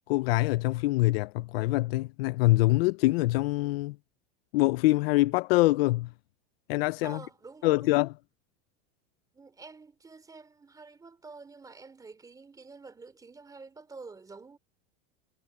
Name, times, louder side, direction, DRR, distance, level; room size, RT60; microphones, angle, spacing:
voice 1, 0.1-4.0 4.5-6.1 6.7-7.2 7.6-8.1, left 19 dB, 55° left, 0.6 m, -24 dB
voice 2, 7.0-7.9 9.3-14.6, right 4 dB, 10° right, 3.2 m, -48 dB
supercardioid pair, 160°, 35 cm